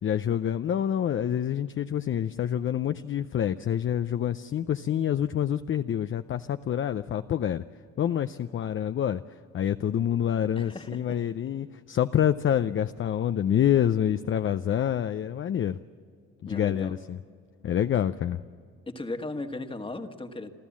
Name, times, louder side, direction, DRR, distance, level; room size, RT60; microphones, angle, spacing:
voice 1, 0.0-7.6 8.0-9.2 9.5-15.8 16.4-17.2 17.6-18.4, left 10 dB, 45° left, 10 dB, 0.5 m, -27 dB
voice 2, 10.6-11.2 16.5-16.9 18.9-20.5, left 2 dB, 15° left, 7 dB, 1.5 m, -36 dB
28.5 x 13.5 x 7.3 m, 2.2 s
cardioid pair, 90°, 30 cm